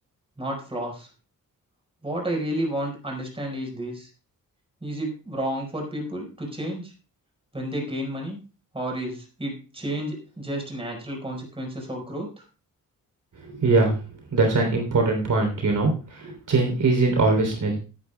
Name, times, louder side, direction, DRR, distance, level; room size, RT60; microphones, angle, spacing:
voice 1, 0.4-1.1 2.0-4.1 4.8-6.9 7.5-8.4 8.7-12.4, right 1 dB, 15° right, 1 dB, 4.9 m, -31 dB
voice 2, 13.6-14.0 14.3-15.9 16.2-17.8, right 3 dB, 65° right, 3 dB, 3.5 m, -21 dB
18.0 x 9.8 x 2.3 m, 0.34 s
wide cardioid pair, 110°, 34 cm